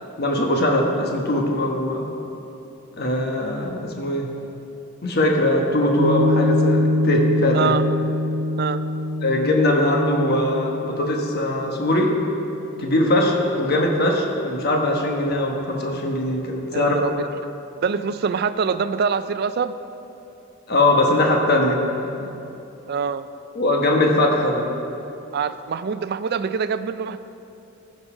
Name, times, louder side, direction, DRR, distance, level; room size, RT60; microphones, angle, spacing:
voice 1, 0.2-2.1 3.0-4.3 5.0-7.7 9.2-12.1 12.8-16.9 20.7-22.3 23.5-24.7, left 1 dB, 50° left, 1 dB, 1.1 m, -21 dB
Piano, 6.0-12.7, left 1 dB, 75° right, 0.8 m, -24 dB
voice 2, 7.5-7.9 8.6-8.8 16.7-17.1 17.8-19.7 22.9-23.3 25.3-27.2, right 6 dB, 50° right, 12 dB, 0.4 m, -24 dB
15.5 x 5.4 x 4.9 m, 2.9 s
head